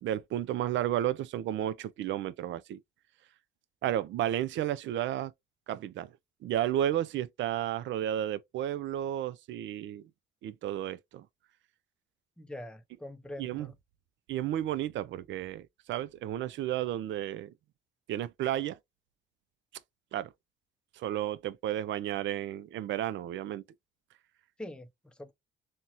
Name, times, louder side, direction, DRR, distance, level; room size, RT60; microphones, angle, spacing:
voice 1, 0.0-2.8 3.8-5.3 5.7-6.1 6.4-10.0 10.4-11.3 13.4-13.7 14.3-17.5 18.1-18.8 20.1-20.3 21.0-23.6, right 12 dB, 70° right, 0.4 m, -32 dB
voice 2, 12.4-13.8 24.6-25.3, left 1 dB, 5° left, 0.5 m, -44 dB
3.9 x 2.1 x 2.8 m
cardioid pair, 90°, 20 cm